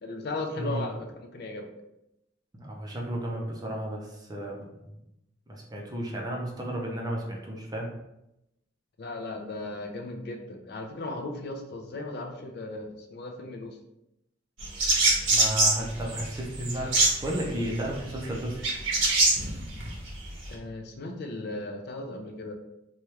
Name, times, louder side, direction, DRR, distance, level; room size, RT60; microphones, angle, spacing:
voice 1, 0.0-1.7 9.0-13.7 20.5-22.5, left 2 dB, 55° left, 3 dB, 0.4 m, -36 dB
voice 2, 2.5-4.7 5.5-7.9 15.3-18.6, right 1 dB, 20° right, -1 dB, 0.5 m, -33 dB
sound 1, 14.6-20.5, right 2 dB, 70° right, 0.8 m, -25 dB
2.9 x 2.3 x 3.1 m, 0.87 s
head